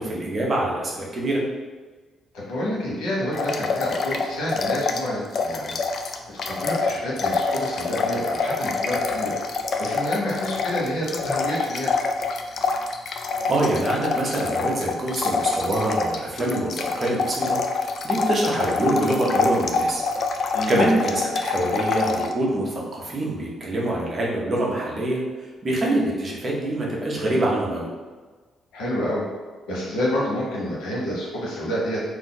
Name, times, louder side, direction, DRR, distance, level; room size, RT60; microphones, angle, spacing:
voice 1, 0.0-1.4 13.5-20.0 20.7-27.9, right 1 dB, 40° right, -3 dB, 0.9 m, -25 dB
voice 2, 2.3-5.8 6.4-9.3 9.8-12.0 20.5-20.9 27.2-27.4 28.7-29.3 29.7-32.0, left 1 dB, 90° left, -5 dB, 1.0 m, -28 dB
sound 1, 3.3-5.1 5.3-22.3, left 4 dB, 55° left, 0.3 m, -26 dB
2.6 x 2.4 x 3.8 m, 1.4 s
cardioid pair, 90°, 0 cm